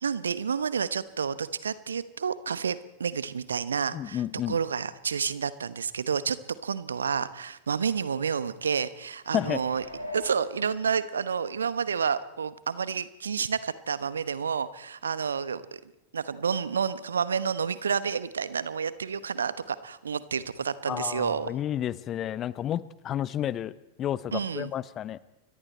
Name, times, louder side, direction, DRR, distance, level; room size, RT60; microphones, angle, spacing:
voice 1, 0.0-6.4 6.6-9.8 10.1-15.8 16.1-21.5 24.3-24.7, right 6 dB, 70° right, 16 dB, 1.0 m, -30 dB
voice 2, 3.9-4.6 9.3-9.6 20.9-23.7 24.0-25.2, left 11 dB, 30° left, 18 dB, 0.9 m, -31 dB
sound 1, 9.2-11.3 11.8-11.9, left 2 dB, 90° right, 4.1 m, -42 dB
29.0 x 22.5 x 4.3 m, 0.87 s
figure-of-eight pair, 90°, 0 cm